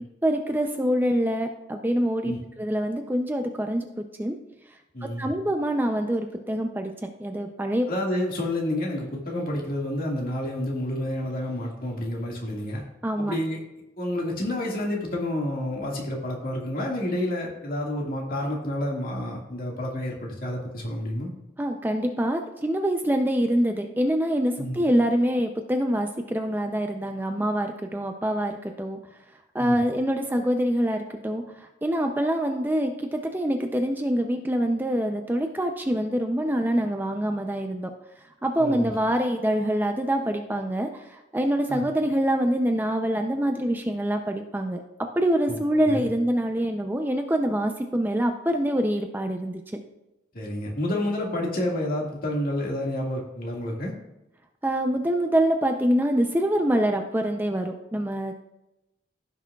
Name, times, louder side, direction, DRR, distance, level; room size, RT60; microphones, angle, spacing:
voice 1, 0.2-3.9 4.2-4.4 5.0-7.9 13.0-13.4 21.6-29.0 29.5-37.9 38.4-44.8 45.2-49.6 54.6-58.3, equal, 10° right, 4 dB, 0.4 m, -25 dB
voice 2, 4.9-5.3 7.9-12.8 13.2-13.6 14.0-21.3 24.6-24.8 29.6-29.8 38.6-38.9 41.7-41.8 45.5-45.6 45.8-46.1 50.3-53.9, left 1 dB, 50° left, -2 dB, 2.0 m, -29 dB
15.5 x 6.0 x 2.3 m, 0.93 s
head